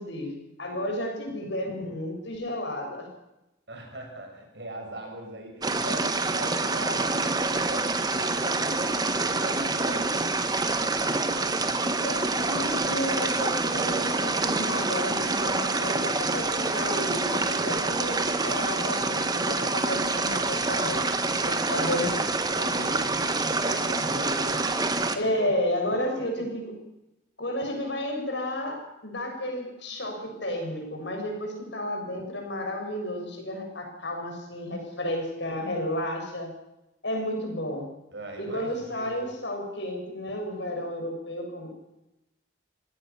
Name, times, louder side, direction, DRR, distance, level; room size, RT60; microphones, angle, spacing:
voice 1, 0.0-3.1 12.0-21.0 21.7-22.1 22.8-22.9 25.1-26.7 27.4-28.8 29.0-36.5 37.0-37.9 38.4-41.7, left 1 dB, 70° left, 3 dB, 7.3 m, -32 dB
voice 2, 3.7-10.3 21.4-22.1 22.5-24.8 25.2-25.5 25.9-26.5 38.1-39.2, right 1 dB, 65° right, 3 dB, 7.0 m, -39 dB
sound 1, 5.6-25.2, right 3 dB, 20° right, 1.6 m, -27 dB
25.5 x 17.0 x 7.2 m, 0.91 s
head